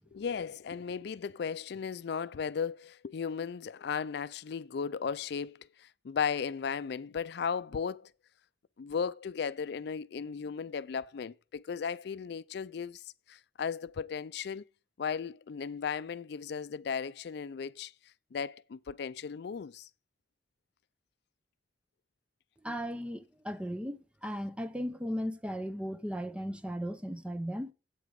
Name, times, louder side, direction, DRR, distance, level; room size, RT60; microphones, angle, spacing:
voice 1, 0.1-8.1 8.8-14.6 15.0-17.9 18.3-19.9, left 6 dB, 65° left, 0.4 m, -36 dB
voice 2, 22.6-27.7, equal, 5° right, 0.6 m, -36 dB
8.5 x 7.9 x 5.1 m
head